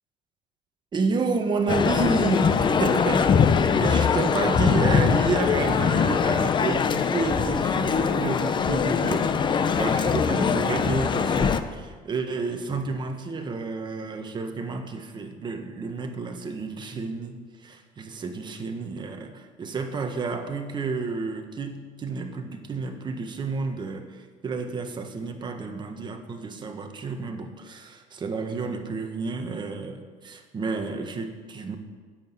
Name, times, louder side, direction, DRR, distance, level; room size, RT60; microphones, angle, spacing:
voice 1, 0.9-31.8, right 4 dB, 25° right, 5 dB, 1.4 m, -30 dB
Male speech man speaking, 1.7-11.6, left 6 dB, 30° left, 0.7 m, -22 dB
10.0 x 7.9 x 8.3 m, 1.5 s
cardioid pair, 130°, 16 cm